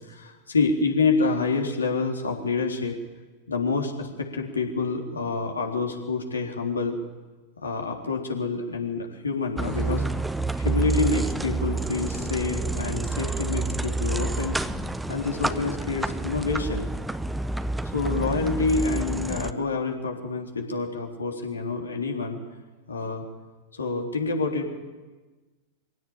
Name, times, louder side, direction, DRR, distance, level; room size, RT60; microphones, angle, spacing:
voice 1, 0.1-3.0 3.5-7.0 7.6-10.0 10.6-14.6 15.1-16.9 17.9-22.4 22.9-23.2 23.7-24.7, left 4 dB, 75° left, 2 dB, 3.5 m, -27 dB
sound 1, 9.6-19.5, right 3 dB, 5° right, 0.9 m, -28 dB
24.5 x 16.5 x 8.9 m, 1.2 s
figure-of-eight pair, 90°, 0 cm